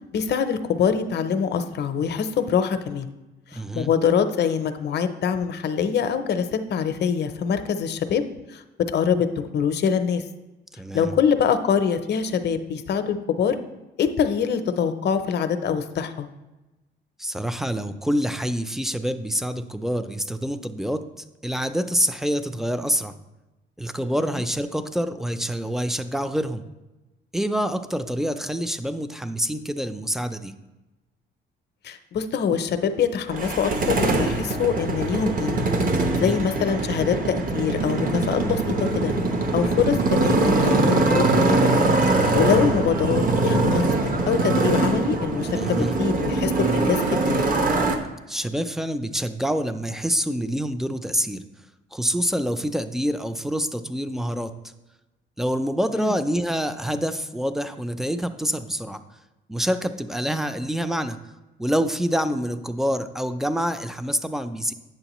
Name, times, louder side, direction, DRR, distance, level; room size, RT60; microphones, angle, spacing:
voice 1, 0.1-3.1 3.5-10.2 10.9-13.6 14.0-16.3 24.3-24.4 31.8-35.7 36.1-39.1 39.5-41.7 42.3-47.4 55.9-56.1, left 7 dB, 60° left, 10 dB, 0.6 m, -24 dB
voice 2, 3.5-3.9 10.8-11.1 17.2-23.1 23.8-26.6 27.3-30.5 36.0-36.4 45.5-45.9 48.3-51.4 51.9-54.5 55.4-59.0 59.5-61.2 61.6-64.7, equal, ahead, 10 dB, 0.4 m, -26 dB
Motorcycle, 33.3-48.0, right 2 dB, 45° right, 0.9 m, -22 dB
8.9 x 6.3 x 3.0 m, 1.1 s
cardioid pair, 90°, 20 cm